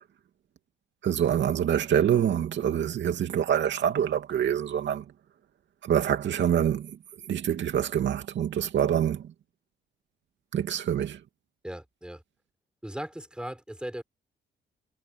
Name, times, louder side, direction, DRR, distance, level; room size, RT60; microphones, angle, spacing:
voice 1, 1.0-5.0 5.8-7.0 7.3-9.2 10.5-11.2, right 9 dB, 65° right, 2.6 m, -26 dB
voice 2, 11.6-12.2 12.8-14.0, right 1 dB, 5° right, 6.3 m, -38 dB
cardioid pair, 90°, 20 cm